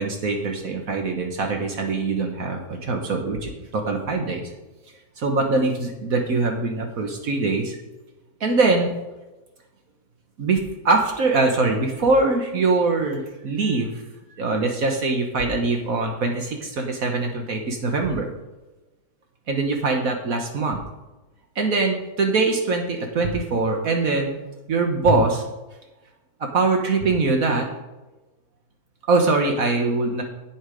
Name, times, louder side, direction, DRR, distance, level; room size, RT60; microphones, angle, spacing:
voice 1, 0.0-4.4 5.2-7.8 8.4-8.9 10.4-10.6 10.9-13.9 14.3-18.3 19.5-20.8 21.6-24.4 24.7-25.4 26.4-27.7 29.1-30.2, right 3 dB, 70° right, 3 dB, 1.6 m, -22 dB
8.8 x 8.1 x 5.2 m, 1.1 s
omnidirectional pair, 1.6 m